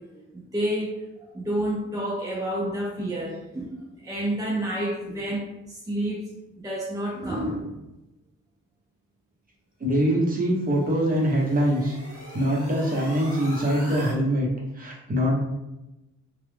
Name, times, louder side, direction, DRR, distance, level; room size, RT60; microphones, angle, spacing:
voice 1, 0.0-6.3 6.6-7.7, right 1 dB, 10° right, -3 dB, 0.3 m, -30 dB
voice 2, 9.8-12.0 12.3-14.5 14.8-15.4, equal, 30° right, -3 dB, 0.8 m, -23 dB
sound 1, 10.2-14.1, equal, 50° right, 1.0 m, -42 dB
2.3 x 2.0 x 3.2 m, 0.95 s
cardioid pair, 85°, 30 cm